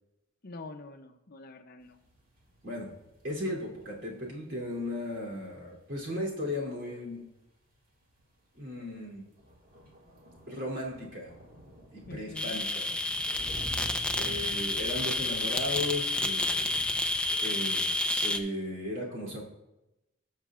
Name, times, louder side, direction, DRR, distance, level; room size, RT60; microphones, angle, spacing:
voice 1, 0.4-2.0 12.1-12.6, left 2 dB, 50° left, 7 dB, 0.6 m, -45 dB
sound 1, 1.8-5.8 6.2-6.3 6.9-7.0 7.8-7.9 8.2-8.3 8.6-8.7 8.9-17.3, equal, 45° right, 1.9 m, -48 dB
voice 2, 3.2-7.3 8.5-9.2 10.5-11.3 11.9-12.9 14.1-16.8 17.3-19.4, left 1 dB, 65° right, -3 dB, 3.1 m, -36 dB
sound 2, 12.3-18.4, left 2 dB, 5° left, 0.5 m, -30 dB
17.0 x 6.4 x 2.4 m, 0.93 s
head